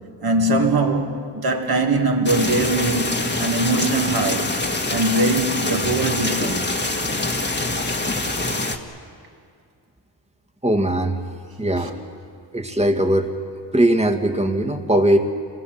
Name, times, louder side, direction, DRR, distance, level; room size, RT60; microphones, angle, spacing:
voice 1, 0.2-4.6 4.9-6.7 11.8-11.9, right 2 dB, 50° right, 2.8 m, -21 dB
sound 1, 2.3-8.8, left 2 dB, 25° left, 1.9 m, -25 dB
voice 2, 10.6-11.2 11.6-12.0 12.5-13.3 13.7-15.2, right 1 dB, 15° right, 2.0 m, -19 dB
27.5 x 20.5 x 7.6 m
cardioid pair, 85°, 45 cm